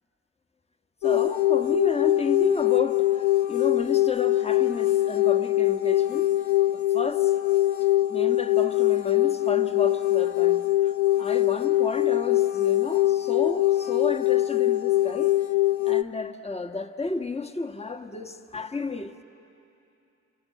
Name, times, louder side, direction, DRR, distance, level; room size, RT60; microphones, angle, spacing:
sound 1, 1.0-16.0, left 15 dB, 70° left, 0.8 m, -23 dB
voice 1, 1.0-6.3 6.7-7.3 8.1-10.9 11.2-15.4 15.8-19.2, left 3 dB, 20° left, 1.5 m, -32 dB
29.5 x 25.5 x 7.7 m
cardioid pair, 90°, 30 cm